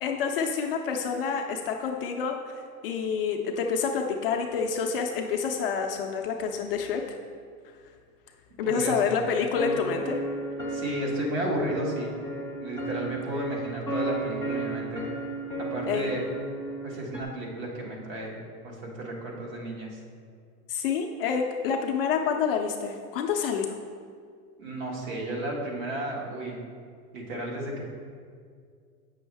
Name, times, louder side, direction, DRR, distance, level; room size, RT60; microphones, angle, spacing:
voice 1, 0.0-7.0 8.6-10.2 15.9-16.1 20.7-23.8, left 6 dB, 40° left, 2 dB, 0.5 m, -28 dB
voice 2, 8.7-9.2 10.7-12.2 12.6-15.1 15.7-16.2 16.8-18.4 18.6-20.0 24.6-26.6 27.1-27.9, right 1 dB, 55° right, -2 dB, 1.9 m, -33 dB
sound 1, 9.6-17.2, right 1 dB, 5° right, 0.6 m, -33 dB
8.2 x 6.2 x 3.4 m, 2.1 s
supercardioid pair, 145°, 47 cm